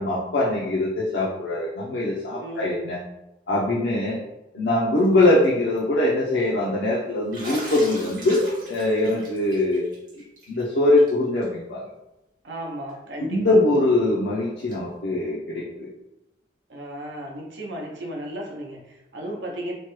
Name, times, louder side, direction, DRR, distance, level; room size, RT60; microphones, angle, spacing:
voice 1, 0.0-3.0 3.5-4.2 4.5-11.9 13.3-15.9, left 2 dB, 75° left, -5 dB, 0.5 m, -22 dB
voice 2, 2.4-2.8 12.4-13.6 16.7-19.7, right 1 dB, 85° right, 0 dB, 0.7 m, -34 dB
Bathtub (filling or washing), 5.0-5.4 5.8-5.9 7.3-10.6 11.0-11.1 11.4-11.5 12.9-13.0 14.7-14.8, right 1 dB, 50° right, 1.0 m, -39 dB
3.1 x 2.1 x 3.0 m, 0.92 s
head